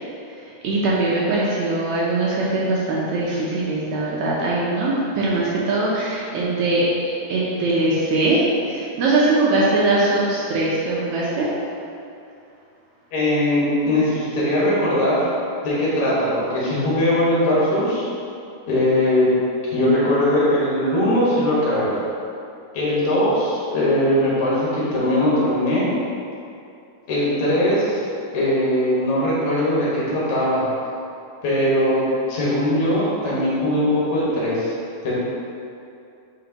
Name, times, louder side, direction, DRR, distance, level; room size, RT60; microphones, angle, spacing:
voice 1, 0.6-6.9 7.3-11.5, right 2 dB, 75° right, -6 dB, 1.9 m, -21 dB
voice 2, 13.1-15.3 15.6-18.0 18.7-19.3 19.7-21.9 22.7-25.9 27.1-28.0 28.3-30.6 31.4-34.8 35.0-35.1, left 1 dB, 65° left, -8 dB, 2.7 m, -20 dB
9.1 x 4.4 x 2.9 m, 2.6 s
omnidirectional pair, 3.8 m